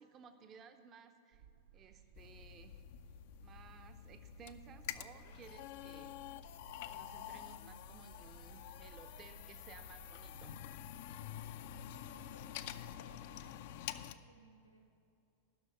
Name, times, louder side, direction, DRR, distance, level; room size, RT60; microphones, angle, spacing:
voice 1, 0.0-1.4 1.7-2.8 3.4-6.1 6.9-10.6, right 6 dB, 30° right, 8 dB, 0.6 m, -58 dB
sound 1, 1.3-13.5, right 9 dB, 60° right, 1.0 m, -63 dB
sound 2, 2.1-14.1, left 11 dB, 50° left, 0.4 m, -48 dB
voice 2, 11.7-13.6 14.0-14.8, left 1 dB, 85° left, 3 dB, 1.3 m, -63 dB
11.5 x 6.2 x 9.0 m, 2.7 s
figure-of-eight pair, 90°, 0 cm